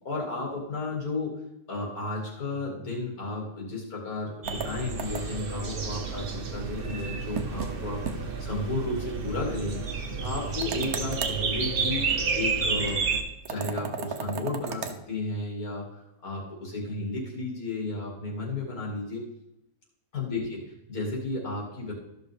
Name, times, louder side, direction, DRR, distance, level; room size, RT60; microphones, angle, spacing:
voice 1, 0.0-1.3 1.7-9.9 10.2-12.0 12.3-13.0 13.5-19.3 20.1-20.6 20.9-21.9, left 2 dB, 80° left, -3 dB, 2.8 m, -33 dB
sound 1, 4.4-13.2, right 5 dB, 45° right, 1.0 m, -31 dB
sound 2, 4.5-5.5 7.4-7.7 8.1-8.2 8.5-8.6 10.6-11.4 13.5-15.0, right 6 dB, 80° right, 1.3 m, -35 dB
13.5 x 5.9 x 3.5 m, 0.87 s
omnidirectional pair, 1.5 m